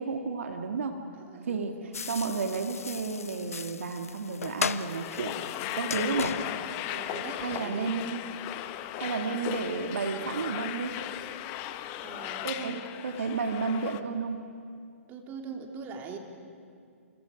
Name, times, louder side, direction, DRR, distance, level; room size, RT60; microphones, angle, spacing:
voice 1, 0.0-1.0 1.4-5.4 5.7-6.4 7.3-8.2 9.0-11.0 12.4-14.5, right 4 dB, 65° right, 5 dB, 1.9 m, -32 dB
voice 2, 1.2-2.0 5.9-6.2 6.9-8.3 9.1-9.4 12.0-13.0 15.1-16.2, right 5 dB, 25° right, 3 dB, 2.9 m, -42 dB
sound 1, 1.9-7.7, left 6 dB, 75° left, 0.8 m, -37 dB
sound 2, 4.5-14.0, left 12 dB, 30° left, 1.1 m, -37 dB
30.0 x 29.5 x 5.1 m, 2.3 s
figure-of-eight pair, 130°, 8 cm